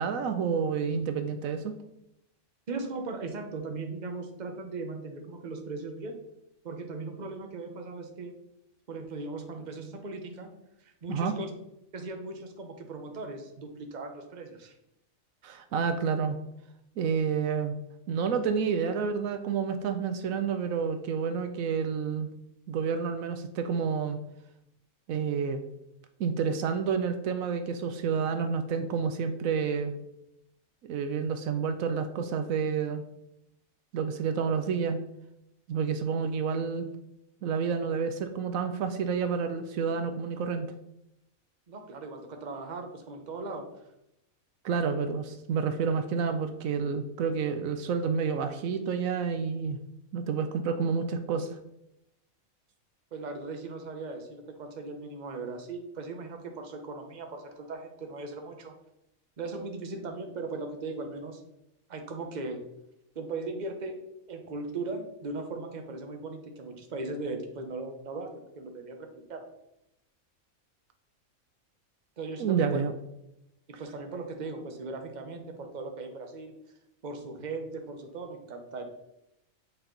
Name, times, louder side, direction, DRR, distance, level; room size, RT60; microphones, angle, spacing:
voice 1, 0.0-1.8 11.1-11.3 15.4-16.4 17.0-17.8 18.1-22.3 22.7-24.2 25.1-25.6 26.2-30.0 30.8-33.0 33.9-35.0 35.7-36.9 37.4-40.7 44.6-49.8 50.1-51.6 72.4-72.9, right 6 dB, 80° right, 8 dB, 1.0 m, -29 dB
voice 2, 2.7-6.1 6.6-8.3 8.9-10.5 10.8-11.5 11.9-14.7 41.7-43.6 53.1-58.8 59.4-61.4 61.9-62.6 63.1-64.0 64.3-68.3 68.6-69.4 72.2-72.8 73.8-76.5 77.0-78.9, right 3 dB, 35° right, 4 dB, 0.9 m, -38 dB
7.9 x 4.3 x 3.8 m, 0.84 s
omnidirectional pair, 1.4 m